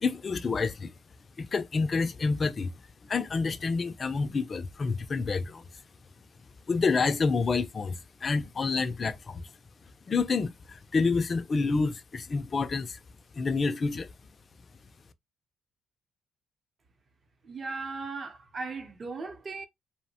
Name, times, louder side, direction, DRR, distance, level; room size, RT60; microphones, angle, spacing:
voice 1, 0.0-0.9 1.4-2.7 3.0-5.6 6.7-9.4 10.1-13.0 13.4-14.1, left 4 dB, 35° left, 0.3 m, -28 dB
voice 2, 17.4-19.7, right 4 dB, 40° right, 0.7 m, -37 dB
2.8 x 2.0 x 2.8 m
cardioid pair, 100°, 0 cm